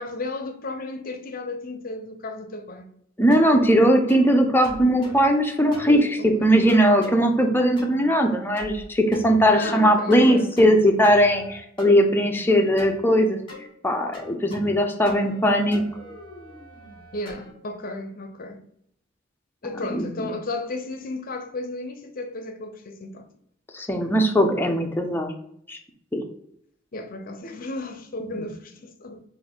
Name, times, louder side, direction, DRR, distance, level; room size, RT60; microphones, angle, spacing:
voice 1, 0.0-2.9 5.8-6.5 9.5-10.7 17.1-18.6 19.6-23.3 26.9-29.2, left 2 dB, 50° left, 0.6 m, -34 dB
voice 2, 3.2-13.4 13.8-15.8 19.9-20.3 23.7-25.3 25.7-25.8 26.1-26.2, equal, 10° left, 0.6 m, -19 dB
sound 1, 3.3-3.7 4.1-4.3 4.6-5.3 5.7-6.0 6.7-7.2 7.8-8.1 8.6-8.9 9.1-9.8 10.1-10.8 11.0-11.9 12.8-13.0 13.5-13.7 14.1-14.8 15.1-15.4 15.7-17.5, left 1 dB, 30° left, 1.5 m, -41 dB
4.1 x 2.6 x 3.7 m
head